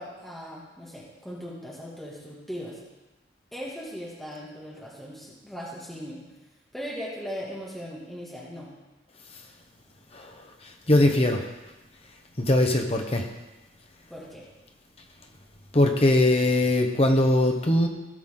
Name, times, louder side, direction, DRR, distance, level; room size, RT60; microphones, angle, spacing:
voice 1, 0.0-2.8 3.5-6.2 6.7-8.7 14.1-14.5, equal, ahead, -6 dB, 1.9 m, -38 dB
voice 2, 10.9-11.4 12.4-13.2 15.7-17.9, left 1 dB, 35° left, 3 dB, 1.1 m, -21 dB
17.5 x 5.9 x 3.8 m, 1.1 s
head